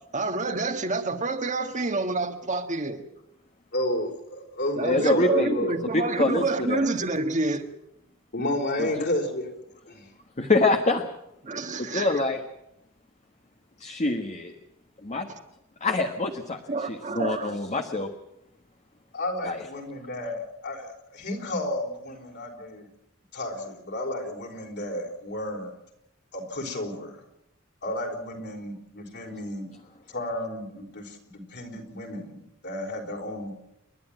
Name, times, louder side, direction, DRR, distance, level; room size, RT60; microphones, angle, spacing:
voice 1, 0.1-3.0 4.8-7.7 11.4-12.2 16.7-17.6, right 3 dB, 35° right, 6 dB, 1.6 m, -28 dB
voice 2, 3.7-5.8 8.3-9.5 9.8-10.1 19.1-22.9 23.3-25.7 26.3-27.2 27.8-29.7 30.1-33.5, left 1 dB, 55° left, 2 dB, 4.6 m, -32 dB
voice 3, 4.8-5.5 5.9-6.9 8.8-9.1 10.4-11.0 11.8-12.4 13.8-14.5 15.0-15.3 15.8-16.6 16.9-18.1 19.4-19.6, left 2 dB, 35° left, 5 dB, 1.4 m, -25 dB
29.5 x 11.5 x 8.9 m, 0.84 s
head